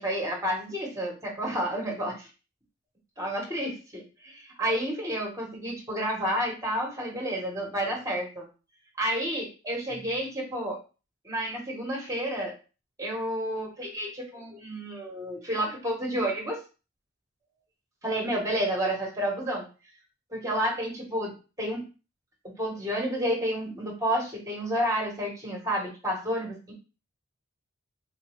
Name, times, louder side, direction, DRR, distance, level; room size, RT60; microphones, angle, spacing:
voice 1, 0.0-2.3 3.2-8.5 9.0-10.8 11.2-12.5 13.0-16.6 18.0-19.6 20.3-21.3 21.6-21.8 22.6-26.7, equal, 15° right, -1 dB, 1.1 m, -30 dB
3.8 x 2.5 x 3.1 m, 0.32 s
head